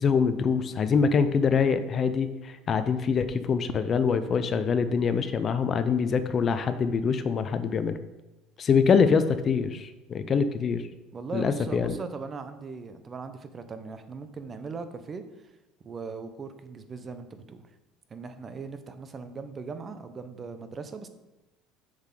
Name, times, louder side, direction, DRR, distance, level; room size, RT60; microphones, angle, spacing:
voice 1, 0.0-8.0 8.6-10.8 11.3-11.9, left 6 dB, 40° left, 11 dB, 0.6 m, -24 dB
voice 2, 11.1-15.2 15.8-17.6 18.1-21.1, right 4 dB, 30° right, 10 dB, 0.7 m, -39 dB
6.9 x 6.5 x 3.8 m, 0.99 s
supercardioid pair, 110°, 0 cm